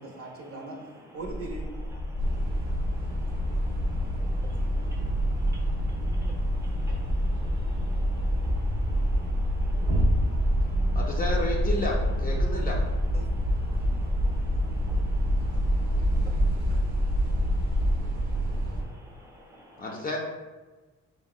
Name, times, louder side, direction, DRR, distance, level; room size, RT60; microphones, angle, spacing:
voice 1, 0.0-1.7 6.9-7.0 7.9-8.0 10.3-10.4 11.0-11.5 13.1-13.2 13.9-14.0 16.7-16.8, right 2 dB, 50° right, -1 dB, 0.7 m, -41 dB
sound 1, 1.2-18.0, left 1 dB, 90° left, 0.6 m, -28 dB
voice 2, 2.1-11.0 12.4-12.7 13.2-19.9, equal, 10° right, -2 dB, 0.7 m, -51 dB
sound 2, 2.2-18.8, right 2 dB, 85° right, 0.6 m, -30 dB
voice 3, 10.9-12.8 19.8-20.2, left 1 dB, 30° left, -2 dB, 0.4 m, -31 dB
3.6 x 2.1 x 2.3 m, 1.2 s
cardioid pair, 90°, 30 cm